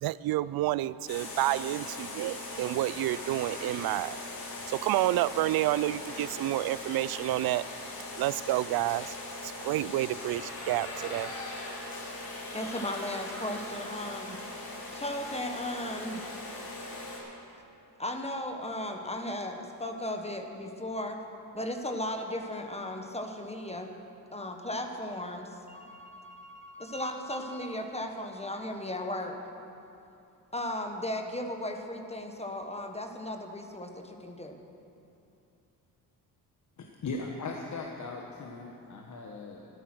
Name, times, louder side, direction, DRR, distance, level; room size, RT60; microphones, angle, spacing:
voice 1, 0.0-4.2 4.7-7.7 8.2-9.2 9.4-11.3, right 15 dB, 70° right, 18 dB, 0.5 m, -29 dB
sound 1, 1.1-17.2, left 2 dB, 65° left, 3.2 m, -40 dB
Sliding door, 2.7-4.6 5.6-7.7, right 2 dB, 20° right, 1.9 m, -50 dB
voice 2, 12.5-14.4 14.9-16.3 18.0-21.2 21.5-23.9 24.3-29.4 30.5-34.6, left 1 dB, 15° left, 4 dB, 1.3 m, -36 dB
voice 3, 36.8-39.7, left 3 dB, 45° left, 1 dB, 1.3 m, -39 dB
13.0 x 12.0 x 6.2 m, 2.8 s
cardioid pair, 75°, 39 cm